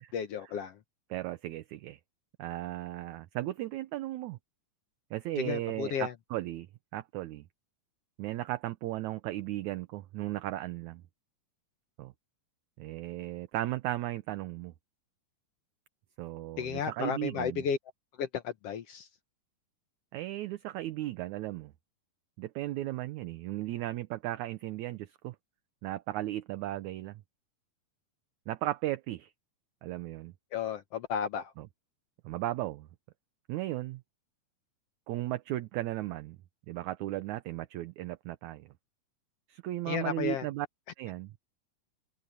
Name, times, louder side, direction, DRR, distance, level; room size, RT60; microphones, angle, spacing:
voice 1, 0.1-0.7 5.4-6.1 16.6-17.8 18.2-19.0 30.5-31.5 39.9-40.4, left 7 dB, 70° left, 1.6 m, -33 dB
voice 2, 1.1-2.0 2.4-4.4 5.1-6.7 6.9-7.5 8.2-11.0 12.0-12.1 12.8-14.7 16.2-17.6 20.1-21.7 22.4-25.4 25.8-27.2 28.5-29.3 29.8-30.3 31.6-31.7 32.2-32.9 33.5-34.0 35.1-36.4 36.7-38.7 39.5-40.7 41.0-41.3, right 15 dB, 75° right, 2.0 m, -36 dB
omnidirectional pair, 3.8 m